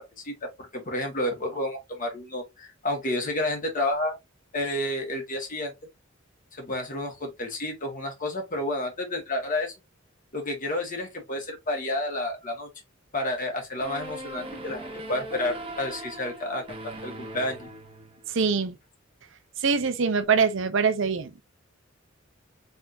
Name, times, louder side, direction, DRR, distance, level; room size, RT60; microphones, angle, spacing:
voice 1, 0.0-4.2 4.5-5.7 6.5-9.7 10.3-12.7 13.1-17.7, left 1 dB, 45° left, 1.7 m, -30 dB
sound 1, 13.8-18.5, right 1 dB, 30° right, 0.8 m, -40 dB
voice 2, 18.3-18.7 19.6-21.4, right 5 dB, 65° right, 0.7 m, -23 dB
4.2 x 3.6 x 2.6 m
head